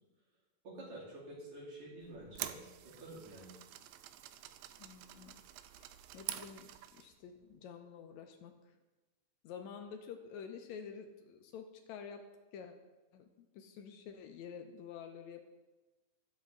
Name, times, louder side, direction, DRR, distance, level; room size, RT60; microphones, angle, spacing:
voice 1, 0.6-2.6 2.8-3.5, right 1 dB, 65° right, -6 dB, 4.1 m, -49 dB
sound 1, 2.0-7.1, right 12 dB, 80° right, 1.5 m, -47 dB
voice 2, 4.8-5.4 6.1-8.5 9.4-12.3 12.5-12.8 13.1-15.4, left 7 dB, 80° left, 6 dB, 1.9 m, -49 dB
12.0 x 7.3 x 3.6 m, 1.1 s
omnidirectional pair, 3.4 m